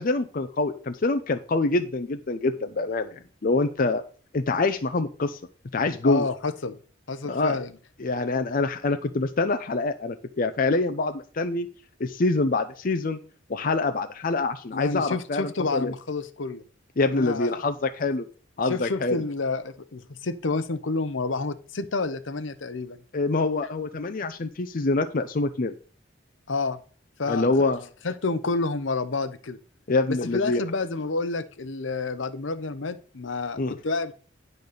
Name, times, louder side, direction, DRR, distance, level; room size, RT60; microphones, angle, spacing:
voice 1, 0.0-4.0 4.3-5.4 5.7-6.3 7.3-7.6 8.0-11.7 12.0-13.2 13.5-15.9 17.0-18.3 18.6-19.2 23.1-25.7 27.3-27.8 29.9-30.6 33.6-33.8, left 3 dB, 45° left, 7 dB, 0.6 m, -25 dB
voice 2, 6.0-6.8 7.1-7.7 14.7-16.6 17.0-17.6 18.7-23.0 26.5-26.8 27.2-27.7 28.0-29.6 30.1-34.1, left 3 dB, 70° left, 11 dB, 0.8 m, -29 dB
10.0 x 4.0 x 6.7 m, 0.40 s
head